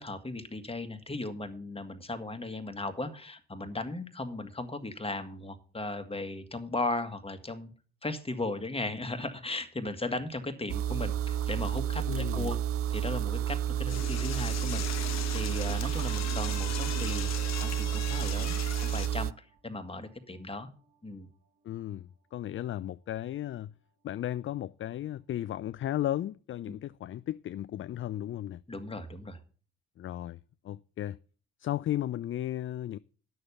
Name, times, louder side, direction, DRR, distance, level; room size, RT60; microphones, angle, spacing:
voice 1, 0.0-7.7 8.0-12.6 12.9-20.7 21.0-21.3 26.7-26.8 28.7-29.4, left 2 dB, 20° left, 1.7 m, -37 dB
sound 1, 10.7-19.3, right 10 dB, 50° right, 0.5 m, -31 dB
voice 2, 12.1-12.5 21.6-23.7 24.0-28.6 30.0-30.4 30.6-31.2 31.6-33.0, left 12 dB, 45° left, 0.4 m, -35 dB
Door / Toilet flush, 13.9-19.1, left 11 dB, 60° left, 0.9 m, -39 dB
sound 2, 19.4-21.0 21.4-21.5, right 2 dB, 35° right, 4.1 m, -57 dB
9.5 x 6.6 x 6.9 m
hypercardioid pair, 50°, 30 cm